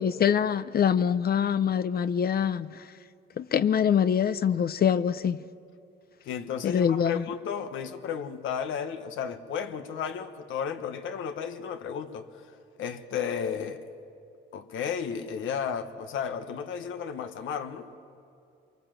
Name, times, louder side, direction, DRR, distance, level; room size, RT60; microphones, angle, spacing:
voice 1, 0.0-2.9 3.4-5.4 6.6-7.2, left 8 dB, 50° left, 0.7 m, -24 dB
voice 2, 6.2-12.4 12.8-13.9 14.5-17.9, left 7 dB, 80° left, 1.4 m, -33 dB
23.5 x 23.5 x 7.6 m
cardioid pair, 90°, 20 cm